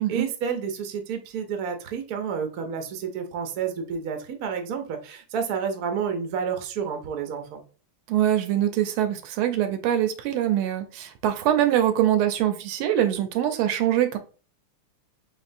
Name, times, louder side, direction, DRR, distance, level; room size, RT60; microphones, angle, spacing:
voice 1, 0.0-7.6, right 6 dB, 65° right, 0.9 m, -30 dB
voice 2, 8.1-14.2, right 11 dB, 80° right, 1.4 m, -23 dB
4.2 x 3.4 x 2.5 m
omnidirectional pair, 2.4 m